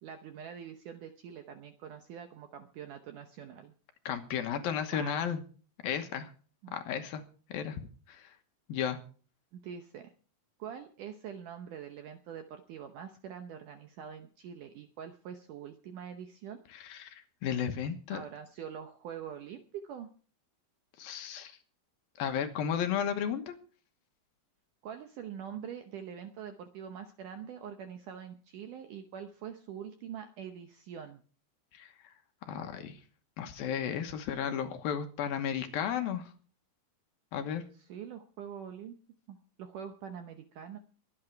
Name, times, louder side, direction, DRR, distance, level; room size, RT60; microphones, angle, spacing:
voice 1, 0.0-3.7 4.9-5.1 6.6-7.0 9.5-10.1 10.6-16.6 18.1-20.1 24.8-31.2 37.7-39.0 39.3-40.8, right 8 dB, 75° right, 7 dB, 2.0 m, -44 dB
voice 2, 4.1-5.4 5.8-6.3 6.7-7.2 7.5-8.4 8.7-9.0 16.7-18.2 21.0-21.6 22.2-23.5 31.7-31.9 32.4-33.0 33.4-36.3 37.3-37.6, left 8 dB, 70° left, 7 dB, 2.8 m, -34 dB
23.0 x 8.9 x 4.6 m, 0.40 s
omnidirectional pair, 4.7 m